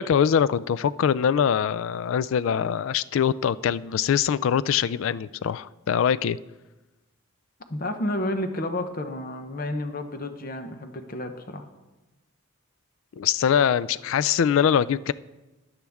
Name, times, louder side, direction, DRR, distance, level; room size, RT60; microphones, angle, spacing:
voice 1, 0.0-6.4 13.2-15.1, left 8 dB, 65° left, 18 dB, 0.3 m, -23 dB
voice 2, 7.7-11.7, left 1 dB, 40° left, 7 dB, 0.8 m, -31 dB
13.0 x 9.7 x 3.5 m, 1.1 s
head